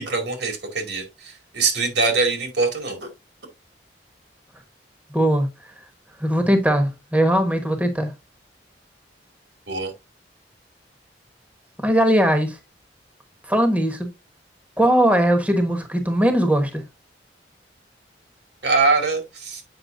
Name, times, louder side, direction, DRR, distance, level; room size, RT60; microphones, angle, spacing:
voice 1, 0.0-3.1 9.7-9.9 18.6-19.6, right 3 dB, 75° right, 2.3 m, -23 dB
voice 2, 5.1-5.5 6.2-8.1 11.8-12.6 13.5-14.1 14.8-16.8, right 1 dB, 10° right, 1.0 m, -19 dB
7.9 x 5.7 x 2.6 m
head